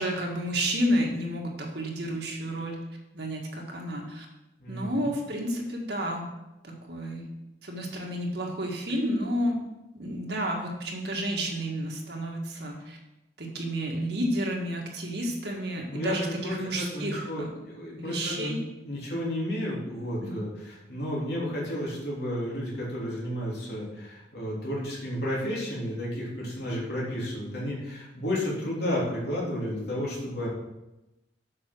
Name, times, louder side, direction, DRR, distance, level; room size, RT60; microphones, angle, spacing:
voice 1, 0.0-2.8 3.1-4.3 4.7-6.3 6.6-7.3 7.6-9.6 10.0-13.0 13.4-17.5 18.0-18.6 20.2-20.4, equal, 60° right, 0 dB, 1.8 m, -31 dB
voice 2, 4.6-5.1 15.9-18.6 18.8-30.5, equal, 60° left, -6 dB, 3.4 m, -32 dB
8.0 x 5.9 x 6.2 m, 0.96 s
head